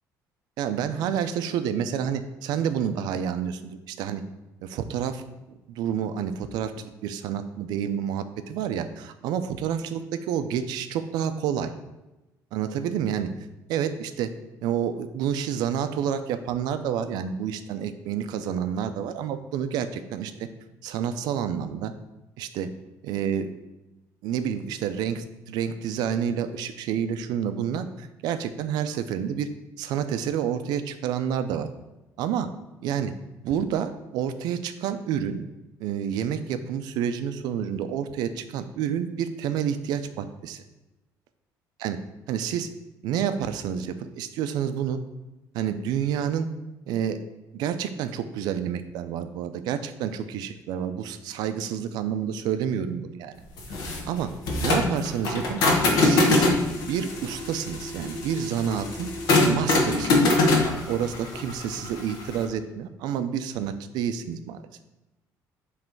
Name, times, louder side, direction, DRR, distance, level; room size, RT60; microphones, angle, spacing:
voice 1, 0.6-4.2 4.6-11.7 12.5-13.3 13.7-14.3 14.6-20.5 20.8-21.9 22.4-22.7 23.0-23.5 24.2-29.5 29.8-31.7 32.2-32.5 32.8-33.1 33.4-35.4 35.8-40.6 41.8-42.0 42.3-42.7 43.0-45.0 45.5-46.5 46.9-47.2 47.5-53.4 54.1-54.3 54.6-55.6 56.0-56.5 56.8-59.1 59.4-60.4 60.9-64.6, right 8 dB, 75° right, 9 dB, 0.5 m, -29 dB
sound 1, 53.6-62.4, left 2 dB, 65° left, 1.2 m, -23 dB
7.6 x 3.3 x 4.6 m, 1.0 s
cardioid pair, 170°, 7 cm